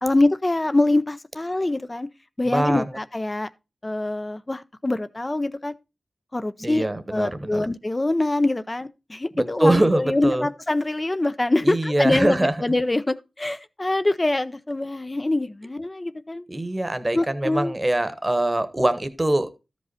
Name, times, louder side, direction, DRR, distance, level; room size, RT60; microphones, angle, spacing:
voice 1, 0.0-2.1 2.4-3.5 3.8-5.7 6.3-6.8 7.1-16.4 17.1-17.7, left 2 dB, 25° left, 0.6 m, -24 dB
voice 2, 2.5-2.8 6.6-7.6 9.3-10.5 11.6-12.5 16.5-19.5, right 1 dB, 20° right, 1.1 m, -23 dB
13.0 x 5.3 x 4.1 m
wide cardioid pair, 85°, 0 cm